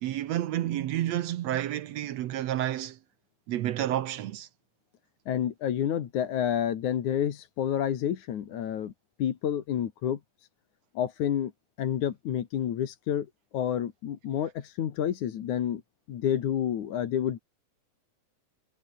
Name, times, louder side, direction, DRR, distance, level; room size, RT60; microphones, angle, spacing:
voice 1, 0.0-3.0 3.5-4.5, right 12 dB, 65° right, 1.8 m, -30 dB
voice 2, 5.3-8.9 9.2-10.2 10.9-11.5 11.8-13.3 13.5-15.8 16.1-17.4, left 10 dB, 70° left, 3.1 m, -29 dB
omnidirectional pair, 3.7 m